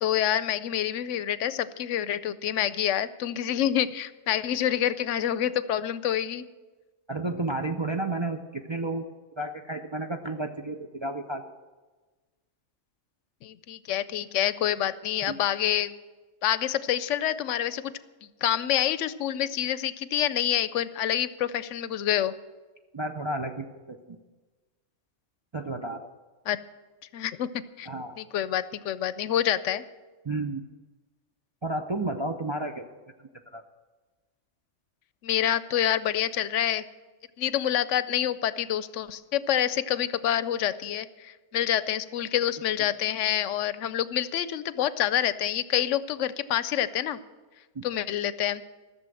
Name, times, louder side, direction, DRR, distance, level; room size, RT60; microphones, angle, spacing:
voice 1, 0.0-6.5 13.4-15.9 16.4-17.9 18.4-22.3 26.5-26.6 27.1-27.5 27.8-27.9 28.2-29.8 35.2-36.8 37.4-47.2 47.8-48.6, left 11 dB, 80° left, 15 dB, 0.9 m, -27 dB
voice 2, 7.1-9.1 9.4-11.5 15.3-15.4 22.9-24.2 25.5-26.1 27.9-28.2 30.2-30.6 31.6-32.8 33.5-33.6 47.8-47.9, right 2 dB, 35° right, 3 dB, 0.4 m, -32 dB
14.5 x 6.9 x 7.6 m, 1.3 s
omnidirectional pair, 1.3 m